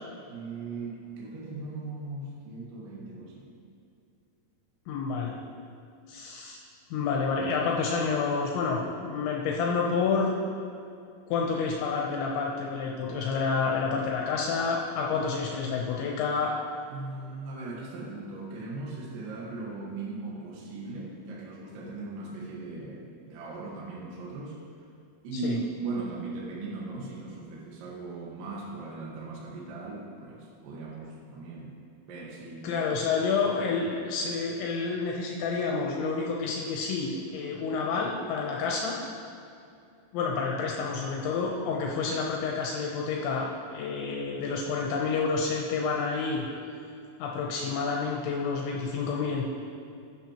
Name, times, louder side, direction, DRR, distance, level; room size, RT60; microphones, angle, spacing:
voice 1, 0.3-3.4 16.9-24.6 25.2-31.8 32.1-32.8, right 3 dB, 60° right, -3 dB, 2.6 m, -38 dB
voice 2, 4.9-5.4 6.1-6.6 6.9-10.3 11.3-16.5 25.4-25.6 32.6-39.0 40.1-46.5 47.2-49.5, left 5 dB, 80° left, -1 dB, 3.0 m, -29 dB
15.0 x 8.9 x 3.0 m, 2.4 s
omnidirectional pair, 5.4 m